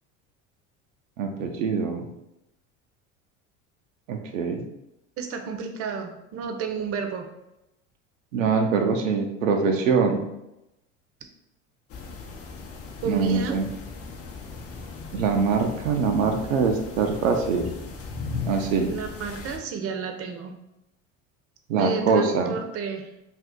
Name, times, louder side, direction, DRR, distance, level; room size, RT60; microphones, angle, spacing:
voice 1, 1.2-2.1 4.1-4.6 8.3-10.2 13.1-13.6 15.1-17.7 18.5-18.9 21.7-22.5, right 5 dB, 90° right, 4 dB, 0.5 m, -23 dB
voice 2, 5.2-7.2 8.8-8.9 13.0-13.6 18.9-20.5 21.7-23.1, right 6 dB, 40° right, 5 dB, 0.6 m, -31 dB
sound 1, 11.9-19.6, left 4 dB, 40° left, 0.6 m, -37 dB
2.6 x 2.4 x 3.6 m, 0.89 s
hypercardioid pair, 80°, 38 cm